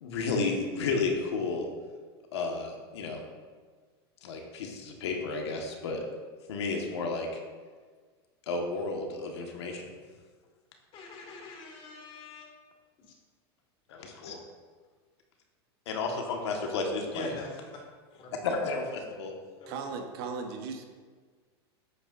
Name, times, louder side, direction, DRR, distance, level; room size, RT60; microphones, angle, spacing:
voice 1, 0.0-1.6 2.3-3.2 4.2-6.0 6.5-7.3 8.5-9.9 13.9-14.4 15.8-17.3 18.4-19.3, left 3 dB, 85° left, 1 dB, 1.5 m, -32 dB
voice 2, 10.9-12.5 13.0-13.1 14.3-14.4 17.1-17.7 18.2-18.3 19.6-19.8, left 2 dB, 40° left, 1 dB, 2.0 m, -42 dB
voice 3, 19.7-20.9, right 5 dB, 65° right, 4 dB, 1.2 m, -37 dB
8.6 x 8.2 x 2.6 m, 1.5 s
supercardioid pair, 125°, 14 cm